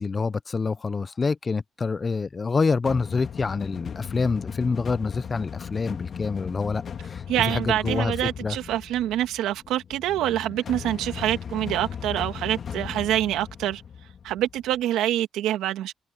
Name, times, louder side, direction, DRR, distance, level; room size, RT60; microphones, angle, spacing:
voice 1, 0.0-8.1 8.4-8.6, left 4 dB, 35° left, 0.7 m, -26 dB
sound 1, 2.9-14.8, left 7 dB, 50° left, 2.1 m, -37 dB
voice 2, 7.3-13.8 14.2-15.9, right 13 dB, 90° right, 2.2 m, -26 dB
cardioid pair, 90°, 0 cm